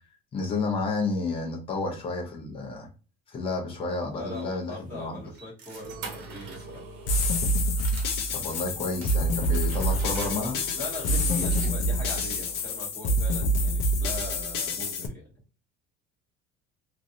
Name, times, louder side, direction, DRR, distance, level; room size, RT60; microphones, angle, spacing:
voice 1, 0.3-2.9 3.3-5.2 8.3-10.6, left 3 dB, 30° left, 1 dB, 0.9 m, -31 dB
sound 1, 3.9-8.6 9.0-12.1, right 5 dB, 75° right, 1.0 m, -46 dB
voice 2, 4.1-6.8 10.7-15.3, left 1 dB, 10° left, -9 dB, 1.2 m, -40 dB
Singing / Musical instrument, 5.8-11.5, right 1 dB, 50° right, 0.6 m, -45 dB
sound 2, 7.1-15.1, equal, 70° left, 0.6 m, -26 dB
3.1 x 2.6 x 2.6 m, 0.33 s
cardioid pair, 175°, 20 cm